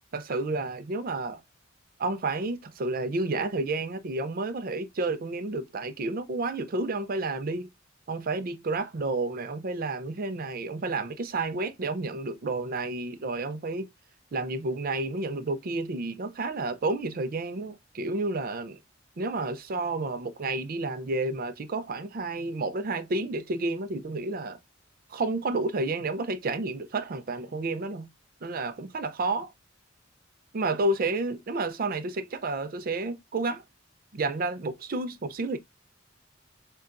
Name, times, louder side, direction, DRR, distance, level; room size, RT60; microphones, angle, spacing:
voice 1, 0.1-1.4 2.0-7.7 8.1-13.9 14.3-18.8 19.2-24.6 25.1-28.1 28.4-29.5 30.5-33.6 34.1-35.6, right 2 dB, 50° right, 0.5 m, -30 dB
6.6 x 2.3 x 2.5 m
head